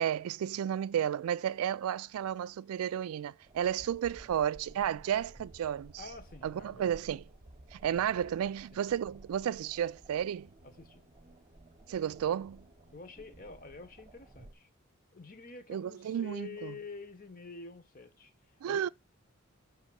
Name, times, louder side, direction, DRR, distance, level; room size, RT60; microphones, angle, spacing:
voice 1, 0.0-5.9 6.4-7.2 7.7-10.5 11.9-12.6 15.7-16.7 18.6-18.9, right 9 dB, 85° right, 0.3 m, -32 dB
sound 1, 3.4-14.5, right 1 dB, 30° right, 0.8 m, -55 dB
voice 2, 6.0-6.9 7.9-8.1 8.4-8.8 10.8-11.1 12.9-14.7 15.1-18.3 18.6-18.9, left 4 dB, 40° left, 1.0 m, -48 dB
6.4 x 3.6 x 6.1 m
head